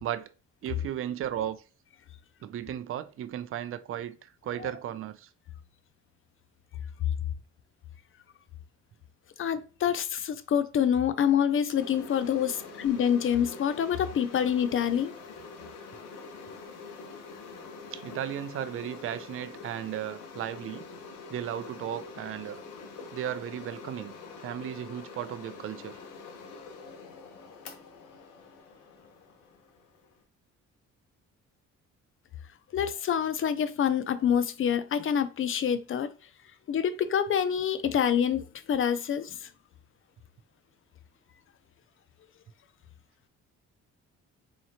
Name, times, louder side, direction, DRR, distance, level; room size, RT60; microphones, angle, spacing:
voice 1, 0.0-0.3 0.6-1.6 2.4-5.3 17.9-20.8 21.3-22.6 23.1-24.1 24.4-26.0, right 11 dB, 45° right, 0.4 m, -35 dB
voice 2, 9.4-15.1 32.7-36.1 36.7-39.5, left 8 dB, 45° left, 0.5 m, -26 dB
sound 1, 11.7-30.2, left 4 dB, 90° left, 0.9 m, -45 dB
4.1 x 2.9 x 2.7 m
cardioid pair, 90°, 30 cm